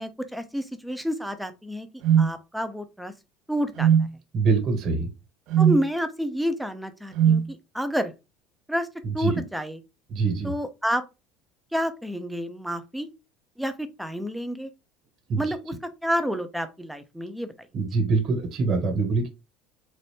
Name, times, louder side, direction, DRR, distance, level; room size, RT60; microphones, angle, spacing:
voice 1, 0.0-1.9 2.2-3.1 3.5-4.1 5.6-8.1 8.7-8.9 9.1-9.8 10.4-11.0 11.7-13.1 13.6-14.7 15.4-15.7 16.0-17.5, equal, ahead, 0.4 m, -29 dB
sound 1, 2.0-2.3 3.8-4.1 5.5-5.8 7.2-7.5, right 8 dB, 55° right, 0.5 m, -18 dB
voice 2, 4.3-5.1 9.2-9.3 10.1-10.5 15.3-15.4 17.7-19.3, right 4 dB, 40° right, 1.3 m, -24 dB
4.1 x 2.5 x 3.4 m
cardioid pair, 155°, 0 cm